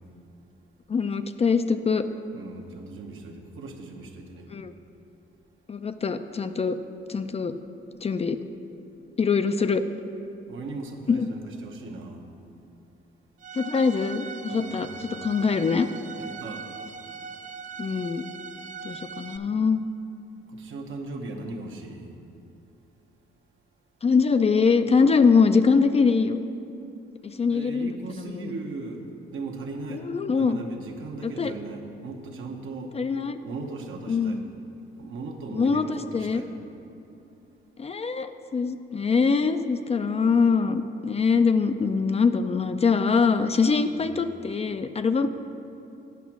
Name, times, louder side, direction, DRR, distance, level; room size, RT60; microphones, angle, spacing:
voice 1, 0.9-2.0 4.5-4.7 5.7-6.8 7.1-7.5 8.0-8.4 9.2-9.8 11.1-11.3 13.6-15.9 17.8-18.2 18.8-19.8 24.0-26.4 27.2-27.9 28.2-28.5 29.9-30.6 31.2-31.5 32.9-33.4 34.1-34.5 35.5-36.4 37.8-45.3, left 5 dB, 30° left, 9 dB, 0.4 m, -23 dB
voice 2, 2.3-4.5 10.5-12.3 14.5-14.9 16.2-16.7 20.5-22.1 27.5-29.0 29.3-33.0 33.4-34.4 35.0-36.5 43.8-44.1, right 3 dB, 70° right, 1 dB, 1.1 m, -38 dB
Bowed string instrument, 13.4-19.4, right 6 dB, 35° right, 0.4 m, -40 dB
8.3 x 6.0 x 5.9 m, 2.9 s
cardioid pair, 75°, 21 cm